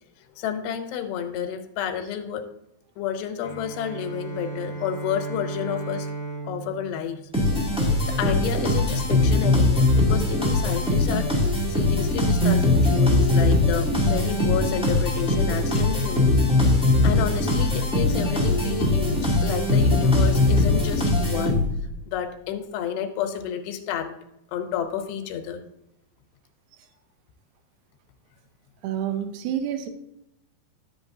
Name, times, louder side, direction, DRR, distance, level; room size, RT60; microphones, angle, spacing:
voice 1, 0.4-2.4 3.0-6.1 6.4-7.2 7.8-11.3 11.7-16.4 16.7-21.6 22.1-24.1 24.5-25.6, left 9 dB, 90° left, 6 dB, 2.9 m, -30 dB
Bowed string instrument, 3.4-8.1, right 3 dB, 40° left, 1.6 m, -36 dB
sound 1, 7.3-21.9, left 2 dB, 5° right, 0.6 m, -21 dB
voice 2, 28.8-29.9, right 10 dB, 85° right, 8 dB, 2.9 m, -28 dB
11.0 x 7.8 x 2.6 m, 0.85 s
omnidirectional pair, 4.8 m